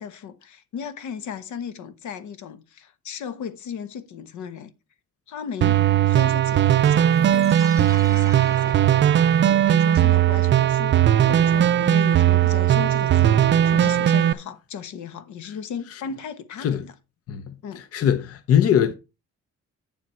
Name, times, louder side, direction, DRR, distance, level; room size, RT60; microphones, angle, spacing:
voice 1, 0.0-4.7 5.3-9.0 9.7-11.0 11.3-16.9 17.6-17.8, left 7 dB, 80° left, 1.2 m, -36 dB
sound 1, 5.6-14.3, right 11 dB, 40° right, 0.4 m, -18 dB
sound 2, 7.1-10.2, right 4 dB, 10° right, 1.0 m, -42 dB
voice 2, 17.9-18.9, left 9 dB, 55° left, 0.8 m, -20 dB
8.9 x 7.3 x 4.4 m
cardioid pair, 170°, 29 cm